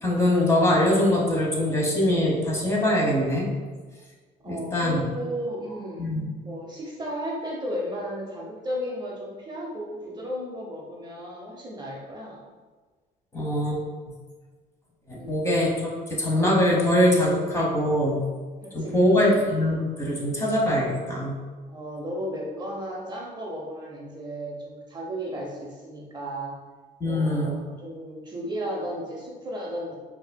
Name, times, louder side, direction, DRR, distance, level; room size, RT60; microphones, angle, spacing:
voice 1, 0.0-3.5 4.5-5.0 6.0-6.3 13.3-13.8 15.1-18.3 18.7-21.4 27.0-27.5, left 1 dB, 15° left, -3 dB, 1.0 m, -23 dB
voice 2, 4.4-6.2 6.4-12.4 15.1-15.6 18.6-19.5 21.7-26.6 27.0-29.9, equal, 25° right, -3 dB, 0.6 m, -34 dB
4.7 x 2.7 x 2.2 m, 1.4 s
cardioid pair, 110°, 17 cm